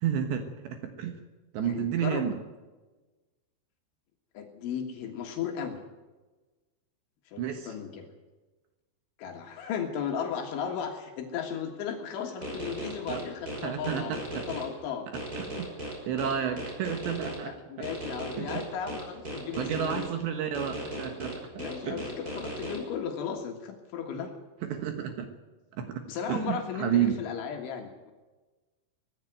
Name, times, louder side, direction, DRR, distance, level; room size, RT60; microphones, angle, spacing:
voice 1, 0.0-1.2 1.5-2.4 7.4-7.7 13.1-13.2 13.6-14.5 15.4-15.7 16.0-17.9 18.4-18.7 19.6-22.1 24.6-25.3 25.7-26.0 26.3-27.1, right 9 dB, 70° right, 6 dB, 3.3 m, -31 dB
voice 2, 1.6-2.3 4.4-5.8 7.3-8.1 9.2-15.1 17.4-20.1 21.6-24.3 26.1-28.1, left 7 dB, 75° left, 3 dB, 4.0 m, -35 dB
sound 1, 12.4-14.6 15.1-17.4 17.8-20.0 20.5-22.8, right 1 dB, 20° right, 6.1 m, -37 dB
19.0 x 15.0 x 9.2 m, 1.2 s
omnidirectional pair, 5.6 m